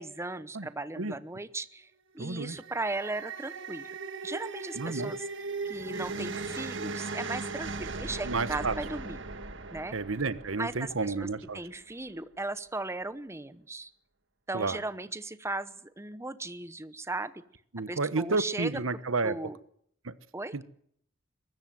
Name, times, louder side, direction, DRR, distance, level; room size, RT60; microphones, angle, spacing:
voice 1, 0.0-3.9 4.2-5.2 5.6-9.2 9.7-9.9 10.6-13.9 14.5-17.4 17.9-19.6 20.3-20.5, right 2 dB, 15° right, 13 dB, 0.9 m, -37 dB
voice 2, 2.2-2.6 4.8-5.1 8.3-8.7 9.9-11.6 14.5-14.8 17.7-19.4 20.0-20.1 20.5-20.6, right 3 dB, 90° right, 14 dB, 1.1 m, -31 dB
sound 1, 2.3-11.6, right 3 dB, 65° right, 1.8 m, -38 dB
23.0 x 14.0 x 9.3 m, 0.67 s
head